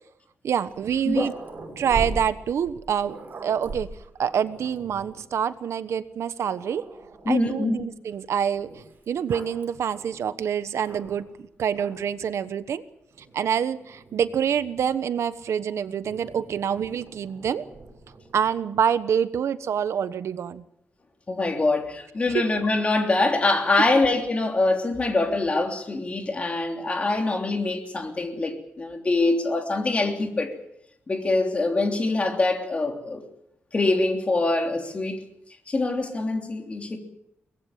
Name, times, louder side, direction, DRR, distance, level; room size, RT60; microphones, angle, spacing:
voice 1, 0.4-1.3 1.8-3.2 3.4-3.9 4.2-6.9 7.3-8.7 9.1-12.8 13.3-17.7 18.3-20.6 22.3-22.4, right 8 dB, 85° right, 1.2 m, -26 dB
Growling, 0.7-5.2 5.9-6.0 6.4-7.5 8.5-11.4 11.7-12.2 13.1-14.9 16.0-18.6, right 3 dB, 40° right, 6.2 m, -40 dB
voice 2, 7.2-7.8 21.3-30.5 31.1-33.2 33.7-35.2 35.7-37.0, left 2 dB, 25° left, 3.3 m, -24 dB
23.5 x 19.5 x 7.4 m
wide cardioid pair, 175°, 5 cm